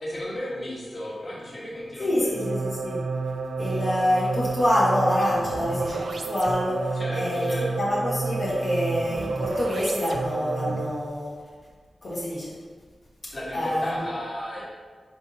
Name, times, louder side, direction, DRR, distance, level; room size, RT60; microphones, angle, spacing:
voice 1, 0.0-2.3 6.9-7.7 13.3-14.6, equal, 35° left, -6 dB, 1.5 m, -34 dB
voice 2, 2.0-3.0 3.6-7.5 7.8-11.4 12.0-12.5 13.2-13.9, left 1 dB, 55° left, -7 dB, 1.4 m, -26 dB
sound 1, 2.3-11.1, right 4 dB, 65° right, 0.4 m, -30 dB
4.8 x 4.0 x 5.4 m, 1.5 s
wide cardioid pair, 130°, 0 cm